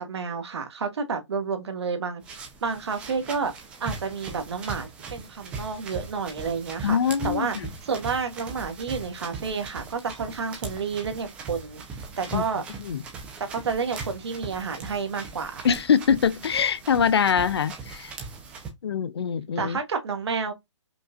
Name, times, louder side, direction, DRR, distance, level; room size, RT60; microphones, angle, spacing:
voice 1, 0.0-2.4 2.6-3.5 3.8-7.0 7.2-7.6 7.8-12.6 13.4-15.6 19.6-20.5, right 5 dB, 60° right, 1.2 m, -30 dB
sound 1, 2.2-18.7, right 4 dB, 5° right, 0.5 m, -39 dB
voice 2, 6.8-7.7 12.3-12.4 12.8-13.0 15.6-18.1 18.8-19.8, left 7 dB, 55° left, 0.5 m, -23 dB
5.2 x 2.4 x 2.3 m
hypercardioid pair, 160°, 16 cm